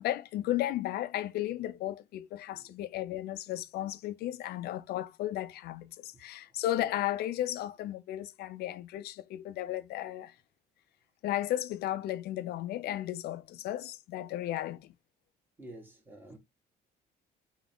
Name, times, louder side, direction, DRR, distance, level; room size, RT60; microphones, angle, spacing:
voice 1, 0.0-10.3 11.2-14.9, left 13 dB, 70° left, 0.5 m, -34 dB
voice 2, 15.6-16.4, right 1 dB, 10° right, 1.6 m, -50 dB
3.8 x 2.9 x 3.6 m
cardioid pair, 110°, 17 cm